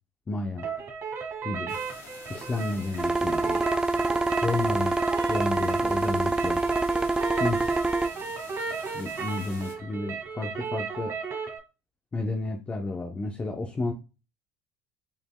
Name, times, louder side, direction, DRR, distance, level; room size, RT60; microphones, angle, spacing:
voice 1, 0.3-0.7 1.4-1.8 2.3-3.6 4.4-6.7 7.3-7.8 8.9-11.1 12.1-13.9, left 2 dB, 25° left, 3 dB, 0.7 m, -31 dB
sound 1, 0.6-11.6, right 5 dB, 45° right, 1.6 m, -35 dB
sound 2, 1.7-9.7, left 3 dB, 50° left, 1.9 m, -47 dB
sound 3, 3.0-8.1, right 2 dB, 10° right, 0.4 m, -26 dB
7.2 x 3.3 x 2.2 m, 0.31 s
hypercardioid pair, 80°, 6 cm